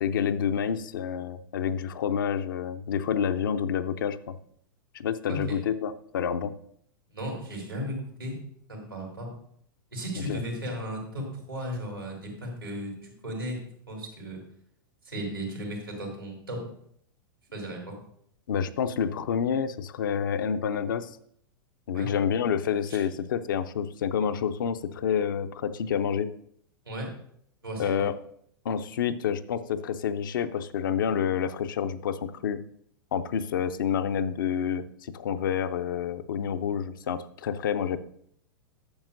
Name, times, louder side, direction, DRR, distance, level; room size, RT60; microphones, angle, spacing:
voice 1, 0.0-4.3 4.9-6.5 10.3-10.4 18.5-21.1 21.9-26.3 27.8-28.1 28.6-32.6 33.1-34.9 35.1-38.0, left 7 dB, 65° left, 10 dB, 0.6 m, -28 dB
voice 2, 7.1-8.4 8.7-9.3 9.9-13.6 13.9-14.4 15.0-16.6 17.5-18.0 21.9-22.1 22.9-23.0 26.9-27.1 27.6-28.1, equal, 90° right, 0 dB, 3.6 m, -35 dB
12.0 x 7.4 x 2.6 m, 0.66 s
figure-of-eight pair, 95°, 12 cm